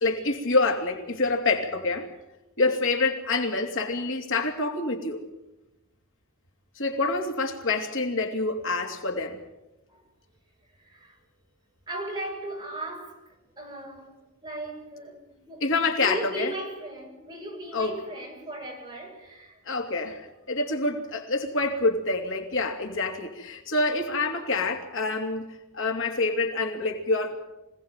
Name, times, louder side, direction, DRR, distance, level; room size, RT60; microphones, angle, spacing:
voice 1, 0.0-2.1 2.6-5.2 6.8-9.4 15.6-16.5 17.7-18.0 19.7-25.5 25.7-27.4, left 3 dB, 60° left, 3 dB, 2.9 m, -27 dB
voice 2, 10.8-11.2 11.9-13.2 13.6-14.2 14.4-15.7 16.0-19.6, right 1 dB, 20° right, 0 dB, 7.6 m, -37 dB
25.5 x 18.0 x 9.1 m, 0.98 s
head